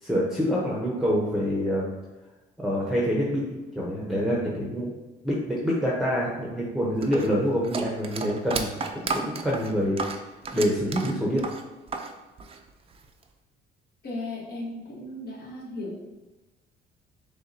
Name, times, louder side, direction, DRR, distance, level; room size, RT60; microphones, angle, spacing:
voice 1, 0.0-1.9 2.6-4.9 5.2-10.0 10.5-11.4, equal, ahead, -4 dB, 0.8 m, -26 dB
sound 1, 7.0-12.1 12.4-13.2, right 4 dB, 30° right, 0.4 m, -33 dB
voice 2, 14.0-16.0, left 2 dB, 60° left, -3 dB, 1.4 m, -36 dB
6.1 x 2.2 x 2.7 m, 1.1 s
cardioid pair, 95°, 19 cm